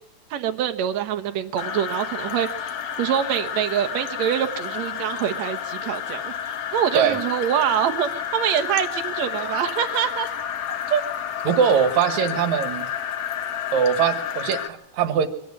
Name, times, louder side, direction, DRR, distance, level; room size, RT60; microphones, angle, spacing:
voice 1, 0.3-2.7 3.0-6.3 6.7-10.3 10.9-11.0, right 9 dB, 75° right, 6 dB, 1.6 m, -25 dB
sound 1, 1.6-14.7, left 9 dB, 70° left, 1.5 m, -30 dB
voice 2, 11.4-12.9 13.7-15.3, right 7 dB, 60° right, 11 dB, 2.2 m, -21 dB
23.5 x 17.5 x 9.7 m, 0.73 s
omnidirectional pair, 4.8 m